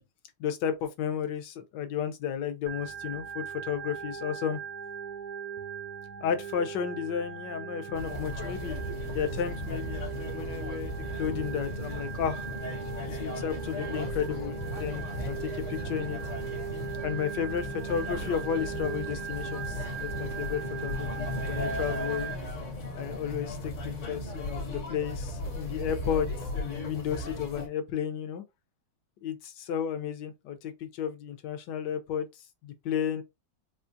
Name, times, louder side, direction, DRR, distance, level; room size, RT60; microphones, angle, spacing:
voice 1, 0.4-4.6 6.2-8.8 9.1-10.0 10.3-10.9 11.2-12.5 13.0-16.2 17.0-22.3 22.9-28.4 29.2-33.2, left 8 dB, 70° left, 1.2 m, -33 dB
Organ, 2.7-22.3, right 8 dB, 75° right, 0.8 m, -39 dB
sound 1, 7.9-27.7, left 1 dB, 45° left, 1.3 m, -36 dB
4.3 x 2.3 x 2.6 m
omnidirectional pair, 2.0 m